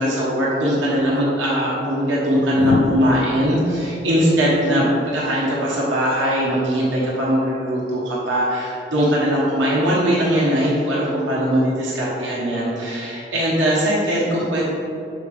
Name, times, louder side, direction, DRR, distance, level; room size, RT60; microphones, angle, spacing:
voice 1, 0.0-14.7, equal, 90° right, -6 dB, 1.0 m, -20 dB
sound 1, 1.0-1.2 2.5-5.6 7.2-7.5, left 4 dB, 85° left, 0.3 m, -29 dB
6.2 x 5.2 x 3.3 m, 2.9 s
head